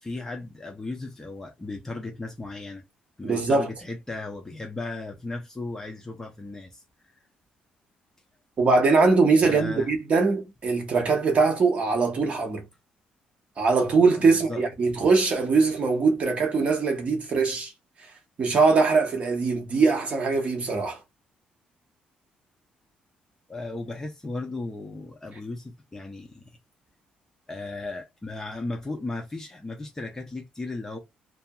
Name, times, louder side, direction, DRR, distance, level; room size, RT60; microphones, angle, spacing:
voice 1, 0.0-2.8 3.2-6.8 7.1-7.2 9.4-9.9 14.2-14.6 23.5-26.6 27.5-31.0, left 2 dB, 15° left, 0.8 m, -36 dB
voice 2, 3.2-3.7 8.6-12.6 13.6-17.7 18.4-21.0, right 4 dB, 45° right, 1.1 m, -22 dB
2.7 x 2.6 x 2.3 m
cardioid pair, 110°, 3 cm